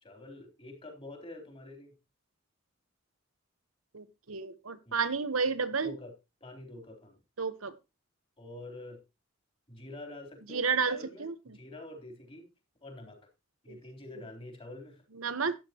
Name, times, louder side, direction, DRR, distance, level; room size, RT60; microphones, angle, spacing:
voice 1, 0.0-1.9 4.9-5.0 5.8-6.1 6.4-7.2 8.4-9.0 9.7-12.5 12.8-13.3 13.6-15.0, left 2 dB, 25° left, 3.4 m, -46 dB
voice 2, 3.9-6.0 7.4-7.7 10.5-11.3 13.7-13.8 15.2-15.5, right 5 dB, 85° right, 1.1 m, -31 dB
12.5 x 9.6 x 2.9 m
head